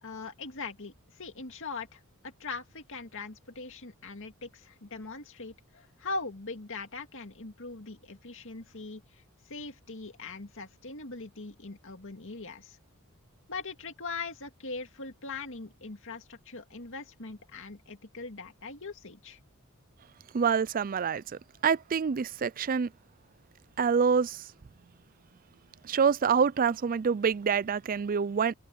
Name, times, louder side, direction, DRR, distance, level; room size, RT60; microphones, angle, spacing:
voice 1, 0.0-12.8 13.5-19.4, left 3 dB, 60° left, 2.3 m, -41 dB
voice 2, 20.3-22.9 23.8-24.5 25.8-28.5, right 6 dB, 40° right, 0.4 m, -26 dB
open air
head